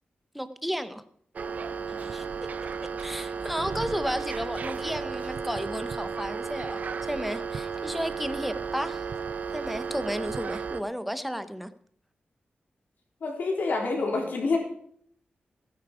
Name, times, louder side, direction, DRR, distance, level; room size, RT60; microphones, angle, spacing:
voice 1, 0.3-1.0 2.0-2.3 3.0-9.0 9.5-11.7, equal, ahead, 11 dB, 0.7 m, -33 dB
sound 1, 1.4-10.8, right 5 dB, 50° right, 0.7 m, -34 dB
voice 2, 13.2-14.6, left 3 dB, 60° left, 1 dB, 3.7 m, -27 dB
16.0 x 9.9 x 4.9 m, 0.63 s
wide cardioid pair, 170°, 4 cm